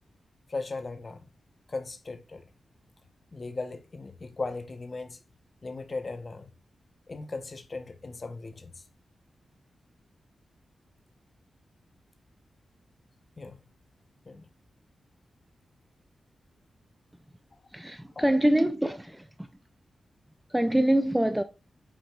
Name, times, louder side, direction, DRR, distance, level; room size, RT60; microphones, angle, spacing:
voice 1, 0.5-1.3 1.7-2.5 3.3-5.2 5.6-6.5 7.1-8.8 13.4-13.7 14.3-14.5 18.2-18.3, left 3 dB, 30° left, 0.8 m, -37 dB
voice 2, 17.7-19.5 20.5-21.4, right 1 dB, 5° right, 0.4 m, -25 dB
9.0 x 4.8 x 2.3 m
wide cardioid pair, 170°, 0 cm